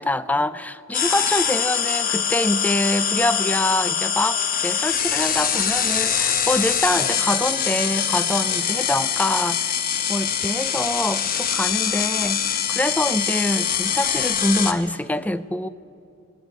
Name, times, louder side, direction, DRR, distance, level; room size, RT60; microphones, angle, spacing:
voice 1, 0.0-9.7 10.1-15.7, left 1 dB, 5° left, 15 dB, 0.4 m, -25 dB
sound 1, 0.9-14.7, left 8 dB, 40° left, 1.1 m, -23 dB
19.5 x 18.5 x 9.2 m, 2.7 s
head